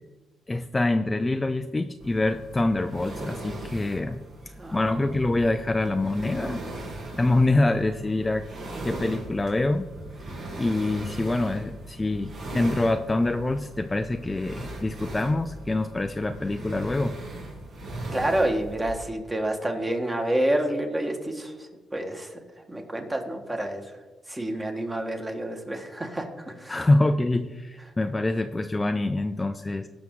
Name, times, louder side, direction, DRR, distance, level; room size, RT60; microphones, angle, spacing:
voice 1, 0.5-4.2 4.7-6.6 7.1-8.4 8.8-9.9 10.6-17.2 26.7-29.9, left 2 dB, 20° left, 8 dB, 0.4 m, -25 dB
sound 1, 2.0-19.0, right 1 dB, 60° right, 2.8 m, -39 dB
voice 2, 18.1-22.4 22.7-23.8 24.3-26.8, right 1 dB, 20° right, 4 dB, 1.6 m, -28 dB
16.5 x 6.0 x 3.8 m, 1.2 s
cardioid pair, 90°, 0 cm